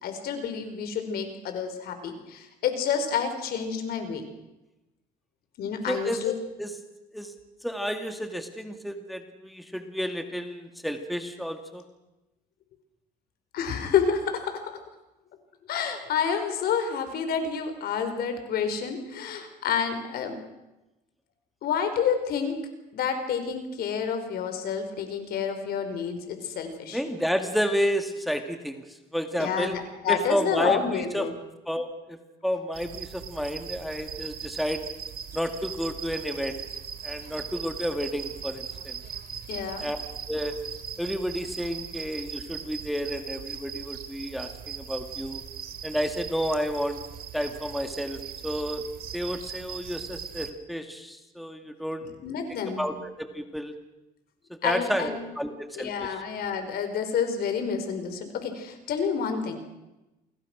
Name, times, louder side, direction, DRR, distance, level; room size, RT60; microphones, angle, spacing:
voice 1, 0.0-4.2 5.6-6.3 13.5-14.6 15.7-20.4 21.6-22.6 22.9-27.0 29.4-31.3 39.5-39.8 52.2-53.0 54.6-55.3 55.8-59.6, left 7 dB, 65° left, 7 dB, 5.2 m, -29 dB
voice 2, 5.9-6.2 6.6-6.7 7.1-7.3 7.6-11.8 26.9-28.8 29.1-29.8 30.1-31.3 31.7-32.2 32.4-34.8 35.3-36.6 37.0-39.0 39.8-40.0 40.3-40.5 41.0-45.4 45.8-47.0 47.3-48.8 49.1-52.1 52.8-53.7 54.6-56.1, equal, ahead, 6 dB, 2.3 m, -31 dB
sound 1, 32.7-50.5, right 7 dB, 65° right, 2.6 m, -39 dB
29.0 x 22.5 x 6.4 m, 0.98 s
cardioid pair, 110°, 17 cm